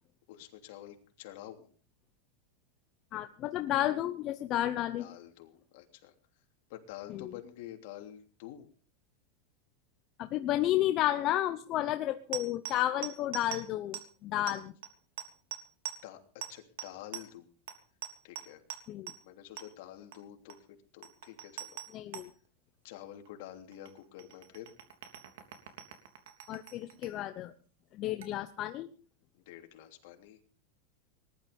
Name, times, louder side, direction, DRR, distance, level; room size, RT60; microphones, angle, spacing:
voice 1, 0.3-1.7 5.0-6.4 6.7-8.7 14.4-14.6 16.0-17.5 18.2-18.6 19.2-20.7 20.9-21.8 22.1-22.2 22.8-24.7 29.4-30.4, left 12 dB, 55° left, 4 dB, 3.2 m, -48 dB
voice 2, 3.1-5.1 7.1-7.3 10.2-14.6 18.9-19.1 21.9-22.3 26.5-27.5 27.9-28.9, left 13 dB, 30° left, 8 dB, 0.8 m, -32 dB
sound 1, 12.3-13.6 13.9-14.0 14.3-14.6 14.8-14.9 15.2-15.6 15.9-16.0 16.4-16.5 16.8-16.9 17.1-17.3 17.7-17.8 18.0-18.4 18.7-18.8 19.1-19.2 19.6-19.7 20.1-20.2 20.5-20.6 21.0-22.3 23.3-23.4 23.7-27.1 28.2-28.3, right 11 dB, 75° right, 3.3 m, -42 dB
20.0 x 12.0 x 5.4 m, 0.42 s
supercardioid pair, 170°, 0 cm